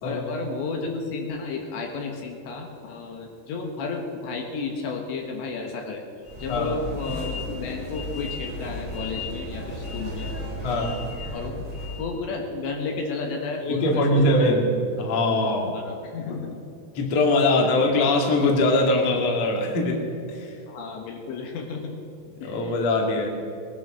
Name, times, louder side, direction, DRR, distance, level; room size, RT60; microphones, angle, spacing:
voice 1, 0.0-6.0 6.4-10.3 11.3-11.7 12.0-14.6 15.7-16.6 17.5-17.9 20.7-22.0 22.4-22.8, left 4 dB, 70° left, 2 dB, 3.5 m, -32 dB
sound 1, 6.2-12.2, left 2 dB, 10° right, 1.8 m, -34 dB
voice 2, 10.6-11.0 13.6-14.7 15.0-15.7 16.3-16.4 16.9-20.0 20.3-20.6 22.4-23.3, left 2 dB, 45° left, 0 dB, 2.5 m, -22 dB
20.0 x 11.0 x 6.3 m, 2.8 s
omnidirectional pair, 5.7 m